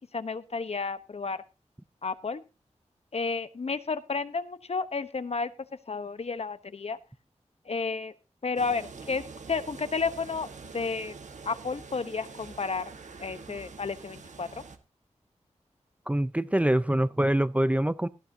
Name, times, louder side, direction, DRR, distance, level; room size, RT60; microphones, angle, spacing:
voice 1, 0.1-1.4 2.0-2.4 3.1-5.5 5.9-7.0 7.7-8.1 8.4-9.2 9.5-10.5 10.7-11.1 11.5-12.9 13.2-14.5, left 4 dB, 60° left, 1.0 m, -31 dB
sound 1, 8.6-14.8, right 4 dB, 90° right, 1.4 m, -45 dB
voice 2, 16.1-18.1, right 1 dB, 10° right, 0.5 m, -25 dB
17.5 x 11.5 x 2.8 m
wide cardioid pair, 85°, 12 cm